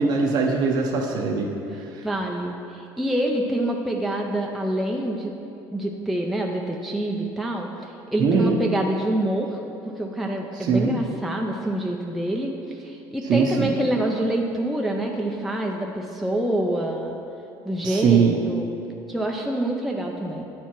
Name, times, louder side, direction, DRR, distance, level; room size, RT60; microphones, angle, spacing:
voice 1, 0.0-1.5 1.9-2.0 8.2-8.6 10.6-11.0 13.3-13.7 17.8-18.3, right 5 dB, 55° right, 0 dB, 0.6 m, -21 dB
voice 2, 2.0-5.3 5.7-9.6 10.0-17.2 17.6-18.7 19.1-20.4, right 1 dB, ahead, 0 dB, 0.4 m, -26 dB
9.2 x 4.5 x 4.4 m, 2.8 s
cardioid pair, 125°, 8 cm